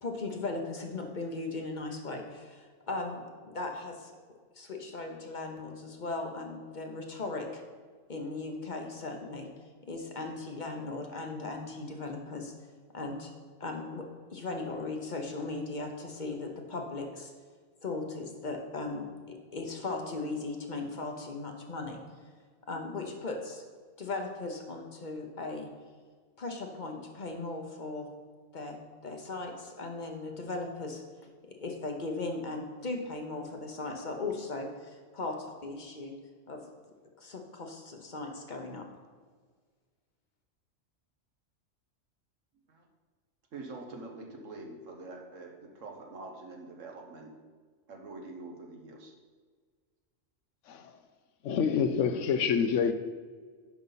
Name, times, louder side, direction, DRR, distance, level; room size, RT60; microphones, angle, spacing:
voice 1, 0.0-4.1 4.5-7.6 8.1-9.5 9.8-12.5 12.9-13.3 13.6-17.3 17.8-22.0 22.7-23.6 24.0-25.7 26.4-28.1 28.5-31.0 31.5-36.1 36.5-36.6 37.2-38.8, left 3 dB, 40° left, 1.0 m, -38 dB
voice 2, 43.5-47.3 47.9-49.1, right 2 dB, 80° right, 1.5 m, -45 dB
voice 3, 51.4-52.9, left 7 dB, 75° left, 0.9 m, -27 dB
10.5 x 5.4 x 4.0 m
omnidirectional pair, 1.3 m